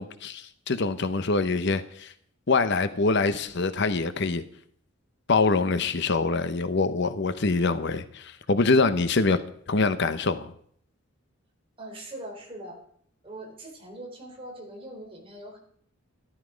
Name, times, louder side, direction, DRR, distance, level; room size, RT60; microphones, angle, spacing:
voice 1, 0.0-2.1 2.5-4.4 5.3-9.4 9.7-10.5, left 3 dB, 60° left, 11 dB, 0.8 m, -24 dB
voice 2, 11.8-12.8 13.2-15.6, right 1 dB, 25° right, 0 dB, 4.0 m, -41 dB
13.0 x 13.0 x 5.1 m, 0.62 s
head